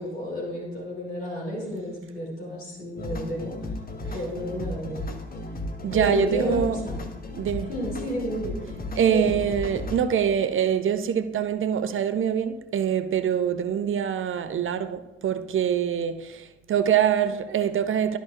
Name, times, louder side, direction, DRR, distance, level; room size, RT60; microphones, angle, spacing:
voice 1, 0.0-3.5 4.1-5.0 5.9-7.0 7.7-8.6 8.9-9.3, equal, 80° left, 2.6 m, -31 dB
sound 1, 3.0-10.0, left 2 dB, 30° left, 1.2 m, -35 dB
voice 2, 5.8-6.8 7.4-7.7 9.0-16.4 16.7-18.2, right 8 dB, 40° right, 0.7 m, -24 dB
13.0 x 5.5 x 2.4 m
figure-of-eight pair, 40°, 31 cm